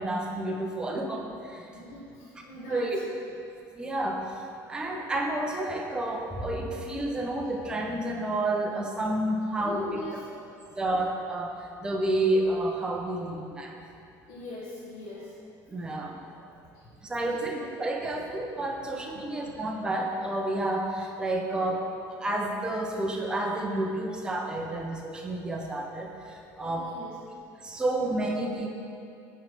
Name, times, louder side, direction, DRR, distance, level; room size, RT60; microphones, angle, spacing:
voice 1, 0.0-1.6 2.7-3.1 3.8-4.3 4.7-9.9 10.8-11.5 11.8-13.8 15.7-16.2 17.0-21.8 22.2-26.9 27.6-28.7, right 1 dB, 10° right, 0 dB, 0.5 m, -30 dB
voice 2, 1.7-2.9 9.6-10.7 13.1-13.3 13.9-15.4 16.3-16.9 17.3-17.4 19.1-19.3 24.7-24.8 25.2-25.3 26.6-27.2, left 2 dB, 70° left, -7 dB, 1.2 m, -42 dB
7.7 x 3.2 x 4.8 m, 2.5 s
cardioid pair, 145°, 8 cm